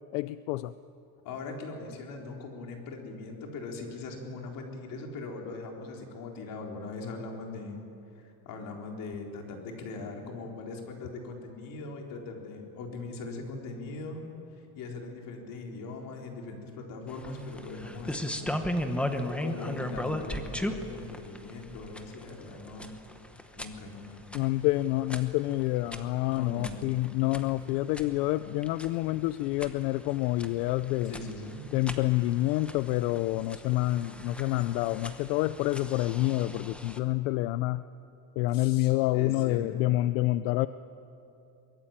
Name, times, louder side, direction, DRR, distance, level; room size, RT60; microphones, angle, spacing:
voice 1, 0.1-0.7 24.3-31.1 31.7-37.8 38.4-40.7, left 17 dB, 75° left, 14 dB, 0.7 m, -28 dB
voice 2, 1.2-7.8 8.1-18.6 19.4-22.9 23.5-24.2 26.3-26.9 31.1-31.6 38.5-39.8, left 3 dB, 45° left, 1 dB, 4.1 m, -40 dB
sound 1, 17.1-37.0, left 1 dB, 5° left, 0.9 m, -38 dB
23.0 x 22.5 x 9.0 m, 2.7 s
cardioid pair, 170°, 47 cm